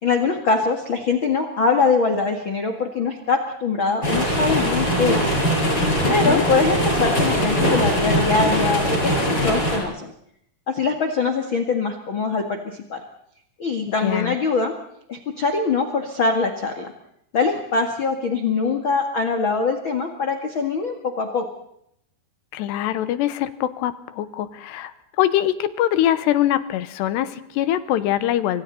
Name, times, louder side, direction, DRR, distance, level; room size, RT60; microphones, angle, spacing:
voice 1, 0.0-5.2 6.1-9.1 9.4-10.1 10.7-13.0 13.6-14.7 15.1-16.9 17.3-21.5, left 4 dB, 40° left, 4 dB, 1.9 m, -23 dB
sound 1, 4.0-9.8, equal, 25° left, 8.1 m, -21 dB
voice 2, 13.9-14.4 22.5-28.6, left 12 dB, 85° left, 13 dB, 3.2 m, -23 dB
29.5 x 24.5 x 4.2 m, 0.72 s
omnidirectional pair, 4.9 m